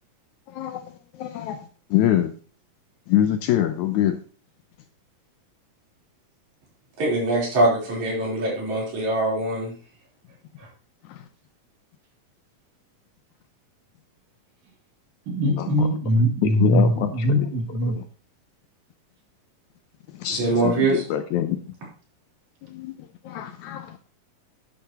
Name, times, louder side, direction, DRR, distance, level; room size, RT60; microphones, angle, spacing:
voice 1, 1.2-1.6 1.9-2.3 3.1-4.2 15.6-15.9 16.4-17.5 17.8-18.0 20.2-21.6 22.7-22.9 23.2-24.0, left 11 dB, 75° left, 8 dB, 1.9 m, -24 dB
voice 2, 7.0-9.7 20.3-21.0, right 2 dB, 60° right, -4 dB, 5.1 m, -23 dB
voice 3, 15.3-18.0, equal, 80° right, 1 dB, 3.9 m, -21 dB
10.0 x 9.8 x 2.9 m, 0.39 s
omnidirectional pair, 3.8 m